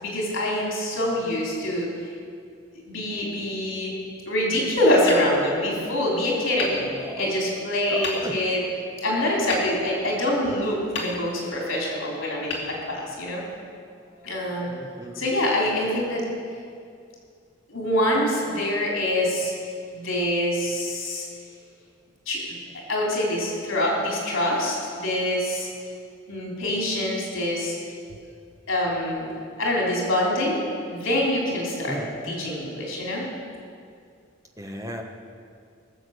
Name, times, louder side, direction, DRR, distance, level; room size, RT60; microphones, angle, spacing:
voice 1, 0.0-1.9 2.9-4.0 4.3-6.9 7.2-8.6 9.0-13.4 14.2-14.7 15.2-16.2 17.7-19.5 19.9-21.3 22.3-22.6 22.9-25.7 26.3-27.8 28.7-29.3 29.6-33.3, left 1 dB, 80° left, -3 dB, 3.6 m, -25 dB
Hammer, 5.0-6.1 6.6-7.5 8.0-8.6 9.5-10.5 10.9-11.7 12.5-13.4, left 3 dB, 65° left, 2.7 m, -35 dB
voice 2, 7.0-7.4 7.9-8.3 14.7-15.2 31.9-32.3 34.6-35.0, right 1 dB, 15° right, 2 dB, 1.3 m, -35 dB
21.5 x 7.6 x 6.6 m, 2.3 s
head